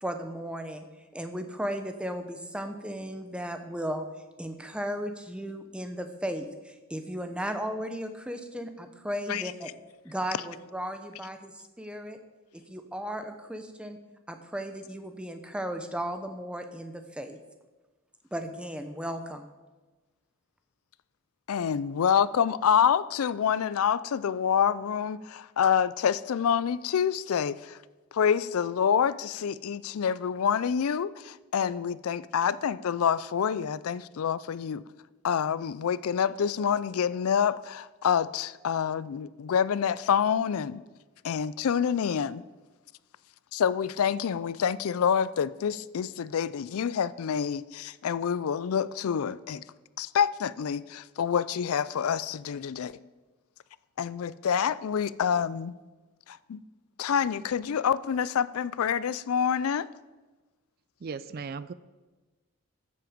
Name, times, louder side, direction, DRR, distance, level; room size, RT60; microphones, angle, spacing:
voice 1, 0.0-0.8 1.1-4.1 4.4-9.7 10.0-12.2 12.7-14.0 14.3-17.4 18.3-19.5, equal, 5° right, 0.8 m, -35 dB
voice 2, 21.5-27.8 28.1-34.8 35.2-40.8 41.2-42.4 43.5-49.6 50.0-53.0 54.0-55.7 56.3-56.6 57.0-59.9, left 7 dB, 70° left, 0.4 m, -27 dB
voice 3, 61.0-61.7, right 5 dB, 45° right, 0.4 m, -37 dB
13.5 x 7.7 x 5.1 m
head